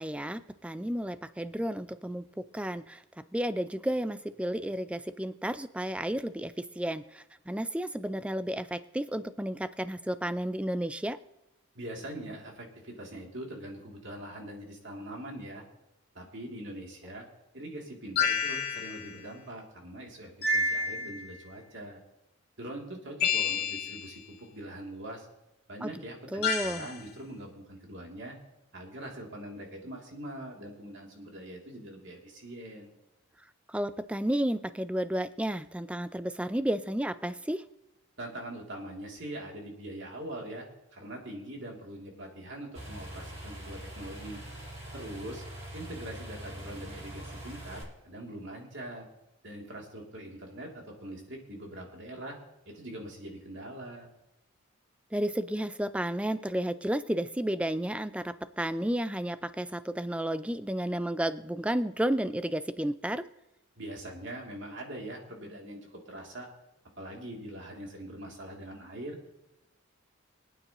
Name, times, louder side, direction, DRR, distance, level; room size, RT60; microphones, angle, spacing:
voice 1, 0.0-2.3 2.5-3.0 3.3-11.2 25.8-25.9 26.3-26.9 33.7-37.6 55.1-63.2, right 1 dB, 5° right, 13 dB, 0.4 m, -32 dB
voice 2, 11.7-15.6 16.1-17.2 17.5-22.0 22.6-25.3 25.7-28.4 28.7-32.9 38.2-40.7 40.9-44.4 44.9-45.4 45.7-49.1 49.4-52.4 52.6-54.1 63.8-66.5 67.0-69.2, right 1 dB, 55° right, 0 dB, 2.8 m, -42 dB
sound 1, 18.2-19.1 20.4-21.3 23.2-24.1 26.4-27.0, left 4 dB, 45° left, 2.2 m, -29 dB
sound 2, 42.7-47.8, right 1 dB, 30° right, 4.9 m, -43 dB
24.5 x 9.2 x 3.0 m, 0.91 s
head